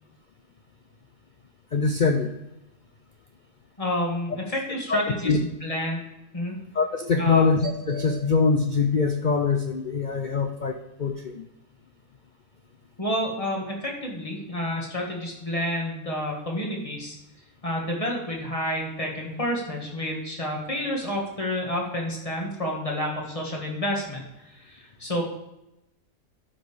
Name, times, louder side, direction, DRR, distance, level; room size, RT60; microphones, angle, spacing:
voice 1, 1.7-2.4 4.9-5.4 6.7-11.4, left 4 dB, 65° left, 5 dB, 0.4 m, -23 dB
voice 2, 3.8-6.1 6.3-6.6 7.2-7.5 13.0-17.2 17.6-24.2 24.5-25.2, equal, 25° left, -1 dB, 1.7 m, -29 dB
12.0 x 5.2 x 3.4 m, 0.90 s
omnidirectional pair, 1.5 m